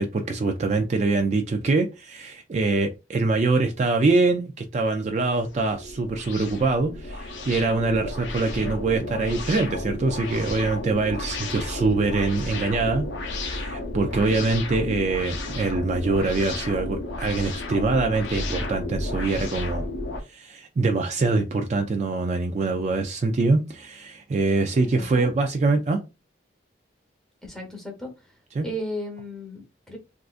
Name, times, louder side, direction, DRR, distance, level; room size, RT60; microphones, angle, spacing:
voice 1, 0.0-13.1 13.4-19.8 20.3-26.0 28.6-28.7, right 3 dB, 35° right, 0.3 m, -24 dB
sound 1, 5.1-20.2, left 2 dB, 80° left, 0.7 m, -32 dB
voice 2, 25.0-25.3 27.4-28.1 28.6-30.0, equal, 5° left, 0.9 m, -35 dB
3.6 x 2.5 x 2.4 m
head